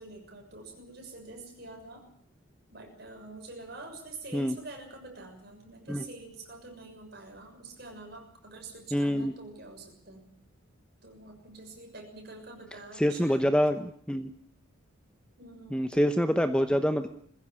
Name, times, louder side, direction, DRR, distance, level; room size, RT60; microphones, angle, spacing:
voice 1, 0.0-2.1 2.7-10.3 11.0-13.5 15.4-16.2, right 2 dB, 50° right, 3 dB, 6.6 m, -46 dB
voice 2, 8.9-9.3 13.0-13.8 14.1-14.3 15.7-17.1, equal, 5° left, 8 dB, 0.9 m, -25 dB
21.5 x 15.5 x 9.8 m, 0.65 s
head